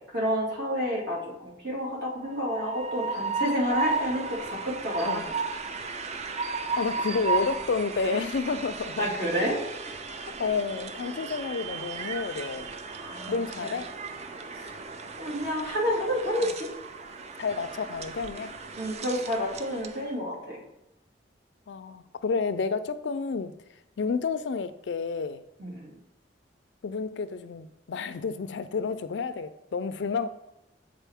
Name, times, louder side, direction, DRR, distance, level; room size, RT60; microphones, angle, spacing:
voice 1, 0.1-5.3 9.0-9.9 13.0-13.3 13.6-13.7 14.5-14.7 15.2-16.7 18.8-20.6 25.6-25.9, equal, 65° right, -4 dB, 2.3 m, -29 dB
Train, 2.3-20.1, right 4 dB, 40° right, 0.5 m, -35 dB
voice 2, 6.8-9.1 10.4-12.7 13.3-13.9 16.4-16.5 17.4-18.6 21.7-23.6 24.0-25.4 26.8-30.3, left 4 dB, 75° left, 12 dB, 0.4 m, -30 dB
8.2 x 3.9 x 3.5 m, 0.87 s
head